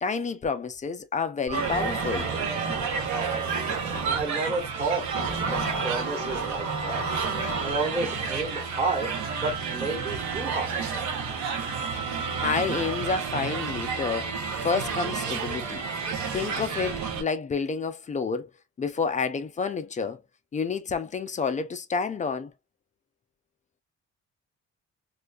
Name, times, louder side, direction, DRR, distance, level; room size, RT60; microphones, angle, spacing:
voice 1, 0.0-2.3 12.4-14.4 14.6-15.8 16.3-18.5 18.8-20.2 20.5-22.5, left 5 dB, 25° left, 0.3 m, -29 dB
sound 1, 1.5-4.2 5.1-7.7, right 3 dB, 50° right, 1.2 m, -33 dB
sound 2, 1.5-17.2, right 5 dB, 70° right, 0.7 m, -31 dB
voice 2, 3.1-3.4 4.1-5.1 5.5-7.1 7.6-9.1 9.4-10.8, right 3 dB, 20° right, 1.1 m, -31 dB
2.4 x 2.2 x 2.3 m
cardioid pair, 90°, 30 cm